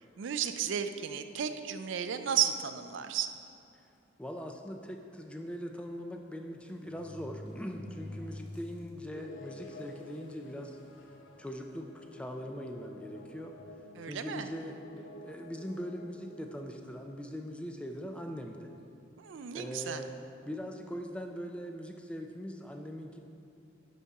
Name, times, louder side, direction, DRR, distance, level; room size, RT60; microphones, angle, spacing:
voice 1, 0.2-3.3 14.0-14.5 19.2-20.0, right 9 dB, 65° right, 9 dB, 0.4 m, -33 dB
sound 1, 3.0-3.3 4.1-4.2 4.5-4.6 5.9-6.0 6.6-8.9 9.4-9.5 10.3-10.4 10.7-11.1 11.7-11.9 13.2-14.0 15.0-15.2, left 1 dB, 25° left, 1.0 m, -47 dB
voice 2, 4.2-10.8 11.4-13.6 14.0-14.8 15.2-18.7 19.5-20.1 20.5-23.2, equal, 5° left, 3 dB, 0.4 m, -41 dB
sound 2, 9.1-16.7, left 2 dB, 75° left, 0.6 m, -51 dB
11.0 x 4.2 x 4.7 m, 2.6 s
head